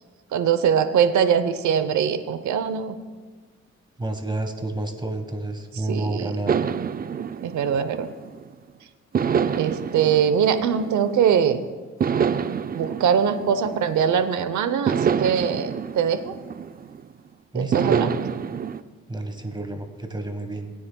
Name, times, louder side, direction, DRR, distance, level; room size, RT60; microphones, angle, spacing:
voice 1, 0.3-2.9 5.9-6.3 7.4-8.1 9.6-11.6 12.7-16.3 17.5-18.1, right 7 dB, 70° right, 10 dB, 0.9 m, -22 dB
voice 2, 4.0-6.6 17.5-18.2 19.1-20.7, right 2 dB, 15° right, 6 dB, 1.4 m, -30 dB
sound 1, 6.5-8.5 9.1-11.4 12.0-14.3 14.9-17.1 17.7-18.8, right 7 dB, 30° right, 0.4 m, -27 dB
19.5 x 9.4 x 2.3 m, 1.5 s
cardioid pair, 90°, 30 cm